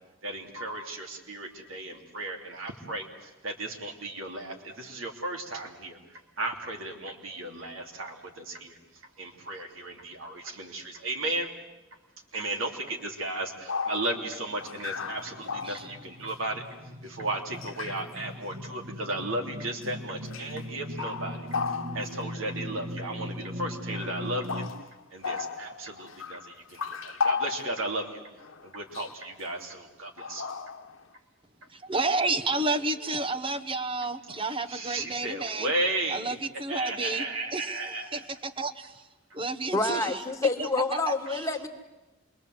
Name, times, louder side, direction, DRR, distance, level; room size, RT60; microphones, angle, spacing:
voice 1, 0.2-11.5 12.3-16.6 17.0-24.7 25.1-28.2 28.6-30.5 34.7-36.2 36.7-38.3, right 2 dB, 80° right, 3.2 m, -35 dB
sound 1, 13.3-13.4 13.7-16.3 17.3-17.4 17.6-18.1 19.0-19.3 19.8-19.9 20.3-20.7 21.0-22.3 23.4-23.5 23.9-28.0 28.4-28.7 28.9-29.1 30.2-31.1, left 5 dB, 85° left, 1.1 m, -35 dB
sound 2, 14.9-24.7, equal, 50° right, 1.7 m, -39 dB
voice 2, 31.7-35.7 36.1-37.2 37.5-39.1 39.3-40.2 40.6-40.7 41.1-41.5, right 3 dB, 25° right, 1.1 m, -31 dB
voice 3, 39.7-41.7, left 3 dB, 15° left, 1.8 m, -27 dB
27.5 x 22.5 x 7.9 m
head